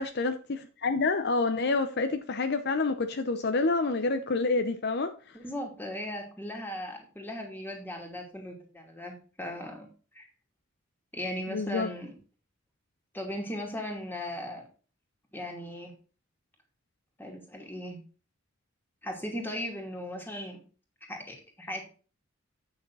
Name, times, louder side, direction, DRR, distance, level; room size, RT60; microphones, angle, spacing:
voice 1, 0.0-5.1 11.5-11.9, left 3 dB, 55° left, 0.7 m, -28 dB
voice 2, 5.3-9.9 10.1-10.3 11.1-12.1 13.1-14.6 15.3-15.9 17.2-18.0 19.0-20.6 21.1-21.8, equal, 10° left, 2.6 m, -37 dB
8.9 x 6.5 x 4.0 m
head